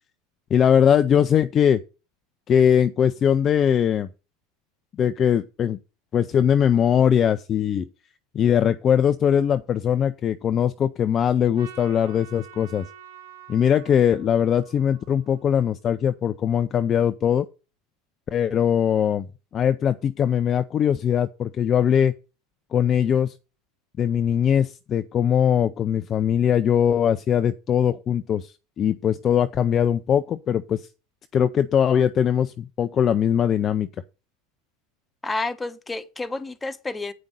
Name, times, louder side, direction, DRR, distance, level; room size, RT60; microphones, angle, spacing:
voice 1, 0.5-1.8 2.5-4.1 5.0-5.8 6.1-7.9 8.3-12.9 13.5-17.5 18.3-19.3 19.5-22.1 22.7-23.3 24.0-28.5 28.8-30.9 31.3-33.9, left 8 dB, 35° left, 0.5 m, -21 dB
Trumpet, 11.5-15.9, right 7 dB, 75° right, 3.2 m, -47 dB
voice 2, 35.2-37.1, left 3 dB, 15° left, 1.1 m, -30 dB
8.7 x 5.3 x 6.4 m
figure-of-eight pair, 80°, 0 cm